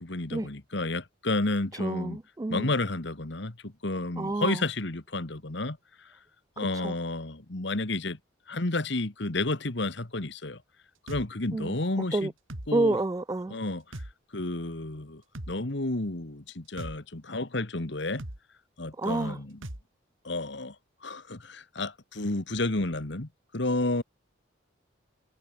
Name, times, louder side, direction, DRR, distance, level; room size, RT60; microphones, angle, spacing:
voice 1, 0.0-2.2 2.5-5.8 6.6-8.2 8.5-10.6 11.1-12.3 12.7-13.0 13.5-13.8 14.3-15.2 15.5-18.2 18.8-19.6 20.2-20.8 21.0-23.3 23.5-24.0, left 2 dB, 60° left, 1.6 m, -31 dB
voice 2, 1.8-2.7 4.2-4.6 6.6-6.9 11.5-11.8 12.1-12.3 12.7-13.6 19.0-19.4, right 2 dB, 15° right, 0.3 m, -29 dB
sound 1, 11.1-11.3 12.5-12.7 13.9-14.1 15.3-15.5 16.8-17.0 18.2-18.4 19.6-19.8, right 1 dB, 80° right, 3.1 m, -38 dB
head